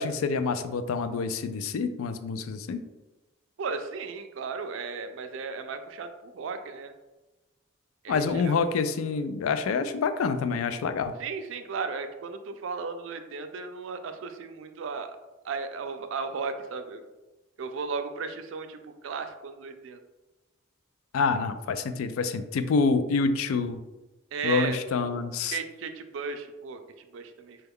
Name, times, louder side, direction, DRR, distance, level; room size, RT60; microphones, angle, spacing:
voice 1, 0.0-2.8 8.1-11.1 21.1-23.8 24.4-25.6, left 4 dB, 90° left, 10 dB, 0.3 m, -27 dB
voice 2, 3.6-6.9 8.0-8.6 11.2-15.2 15.4-17.0 17.6-20.0 24.3-24.8 25.0-27.6, right 5 dB, 70° right, 8 dB, 0.4 m, -35 dB
4.3 x 2.3 x 3.5 m, 1.1 s
head